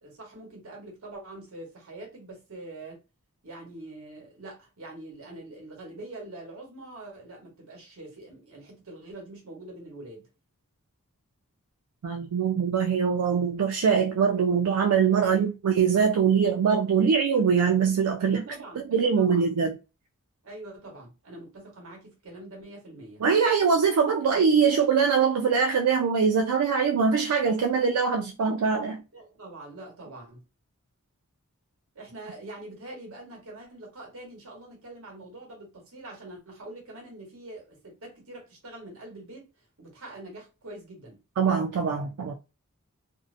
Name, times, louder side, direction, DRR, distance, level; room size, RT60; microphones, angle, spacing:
voice 1, 0.0-3.0 3.4-10.3 15.2-15.4 18.2-19.5 20.4-23.2 29.1-30.4 31.9-39.5 39.8-41.2, right 2 dB, 65° right, 1.1 m, -44 dB
voice 2, 12.0-18.4 18.8-19.8 23.2-29.0 41.4-42.3, right 6 dB, 80° right, 0.4 m, -23 dB
2.6 x 2.0 x 2.5 m
head